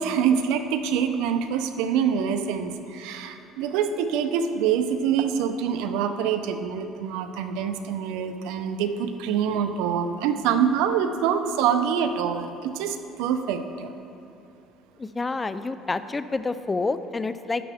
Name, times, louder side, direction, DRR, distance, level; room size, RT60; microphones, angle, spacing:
voice 1, 0.0-13.9, right 7 dB, 90° right, 8 dB, 0.6 m, -25 dB
voice 2, 15.0-17.6, left 3 dB, 20° left, 12 dB, 0.4 m, -28 dB
12.0 x 10.0 x 3.5 m, 2.9 s
cardioid pair, 125°, 0 cm